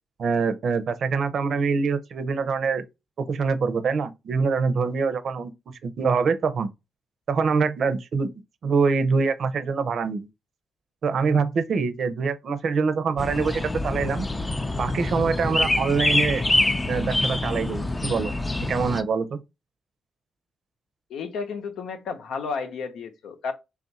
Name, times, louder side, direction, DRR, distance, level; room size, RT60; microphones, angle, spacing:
voice 1, 0.2-2.8 3.2-6.7 7.3-8.3 8.6-10.3 11.0-14.3 14.8-16.4 16.9-18.3 18.6-19.4, right 5 dB, 65° right, 0.6 m, -24 dB
sound 1, 13.2-19.0, left 2 dB, 20° left, 0.4 m, -25 dB
voice 2, 21.1-23.5, left 5 dB, 85° left, 0.7 m, -32 dB
3.5 x 2.5 x 4.1 m
cardioid pair, 95°, 0 cm